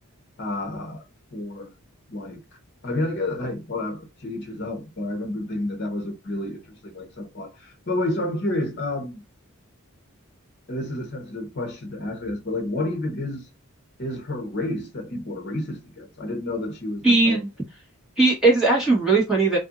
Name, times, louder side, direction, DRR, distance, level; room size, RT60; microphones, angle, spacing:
voice 1, 0.4-1.0 1.3-1.7 2.1-2.4 2.8-9.2 10.7-13.5 14.0-17.4, left 1 dB, 50° left, 0.9 m, -30 dB
voice 2, 17.0-17.5 18.2-19.6, right 3 dB, 5° right, 1.2 m, -18 dB
2.6 x 2.5 x 2.3 m
head